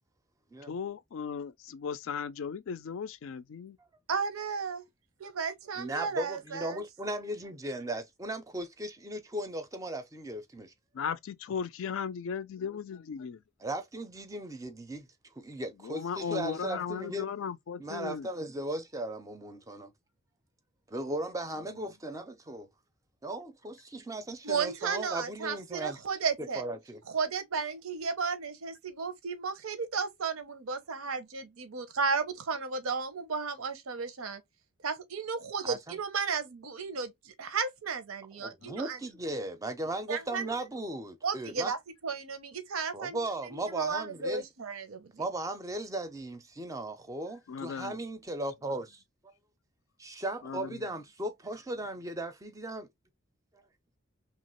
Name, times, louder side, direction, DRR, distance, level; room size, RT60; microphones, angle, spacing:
voice 1, 0.7-3.8 10.9-13.4 15.8-18.3 38.6-38.7 47.5-48.0 50.4-50.9, left 6 dB, 70° left, 0.4 m, -36 dB
voice 2, 4.1-4.8 5.2-6.8 24.4-26.6 27.1-34.4 34.8-39.0 40.1-40.5 41.2-41.8 42.0-45.1, right 5 dB, 90° right, 0.7 m, -34 dB
voice 3, 5.8-10.7 13.6-15.1 15.4-17.3 17.8-19.9 20.9-22.7 23.2-26.0 26.4-27.0 35.6-36.0 38.4-41.7 42.9-44.4 45.2-49.0 50.0-52.9, right 1 dB, 15° right, 0.4 m, -37 dB
2.9 x 2.3 x 3.0 m
head